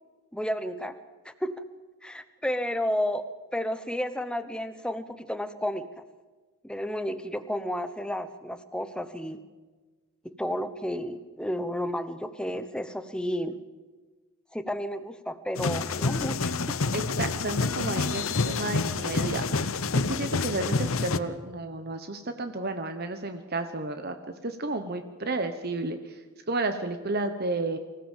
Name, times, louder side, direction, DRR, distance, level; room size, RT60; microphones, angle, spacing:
voice 1, 0.3-0.9 1.2-1.6 2.0-5.9 6.6-9.4 10.2-13.6 14.5-16.8, equal, 5° left, 10 dB, 1.0 m, -32 dB
sound 1, 15.6-21.2, left 4 dB, 70° left, 0.8 m, -28 dB
voice 2, 16.9-19.5 19.9-24.2 24.4-26.0 26.5-27.8, right 2 dB, 45° right, 8 dB, 1.0 m, -32 dB
24.5 x 16.0 x 7.4 m, 1.3 s
head